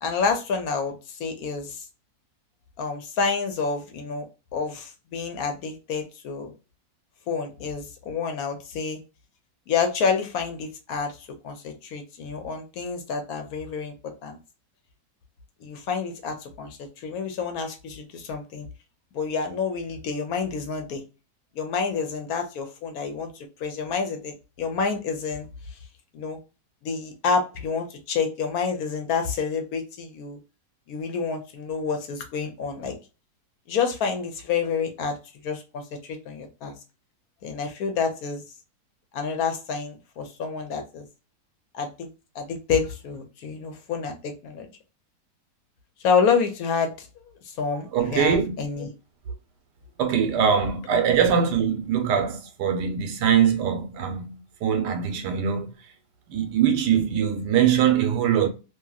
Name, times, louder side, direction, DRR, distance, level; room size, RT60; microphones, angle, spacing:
voice 1, 0.0-1.8 2.8-6.5 7.3-9.0 9.7-13.9 14.2-14.4 15.6-18.7 19.1-21.0 21.5-25.8 26.1-26.4 26.8-30.4 30.9-32.9 33.7-35.1 35.4-35.8 36.1-36.7 37.4-38.4 39.1-41.0 41.7-42.1 42.3-44.7 46.0-47.1 47.4-48.9, left 5 dB, 70° left, 1.0 m, -28 dB
voice 2, 47.7-48.5 50.0-55.7 56.3-58.5, right 8 dB, 85° right, 1.3 m, -22 dB
2.8 x 2.6 x 2.3 m
omnidirectional pair, 1.8 m